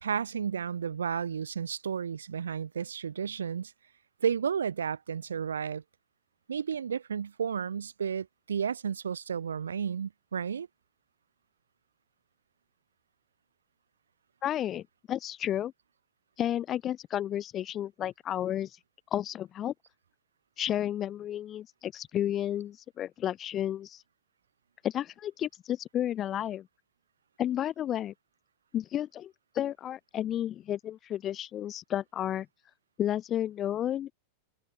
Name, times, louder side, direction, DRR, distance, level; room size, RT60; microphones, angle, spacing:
voice 1, 0.0-3.7 4.2-5.8 6.5-10.7, right 7 dB, 70° right, 2.3 m, -32 dB
voice 2, 14.4-15.7 16.4-18.7 19.1-19.7 20.6-24.0 24.8-26.7 27.4-28.1 28.7-32.5 33.0-34.1, left 11 dB, 30° left, 6.7 m, -32 dB
open air
figure-of-eight pair, 90°, 0 cm